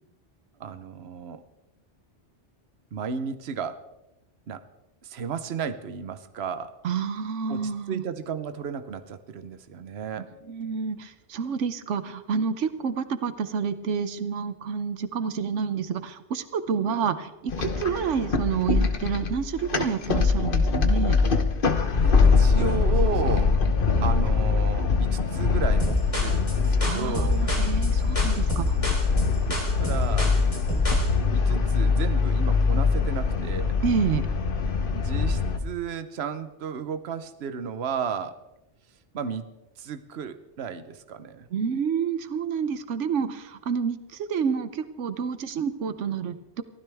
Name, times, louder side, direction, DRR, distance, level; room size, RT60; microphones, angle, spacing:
voice 1, 0.6-1.4 2.9-3.8 4.5-4.7 5.0-6.7 7.5-10.3 22.0-23.5 24.0-27.4 29.8-30.4 31.2-33.8 34.9-38.4 39.1-39.5 39.8-41.5, right 7 dB, 65° right, 11 dB, 1.1 m, -33 dB
voice 2, 6.8-8.0 10.5-21.2 26.8-28.8 33.8-34.3 41.5-46.6, right 6 dB, 90° right, 12 dB, 1.2 m, -29 dB
sound 1, 17.5-35.6, left 4 dB, 50° left, 1.3 m, -23 dB
sound 2, 25.8-31.1, left 1 dB, 30° left, 3.3 m, -29 dB
23.0 x 15.5 x 3.5 m, 0.93 s
omnidirectional pair, 1.2 m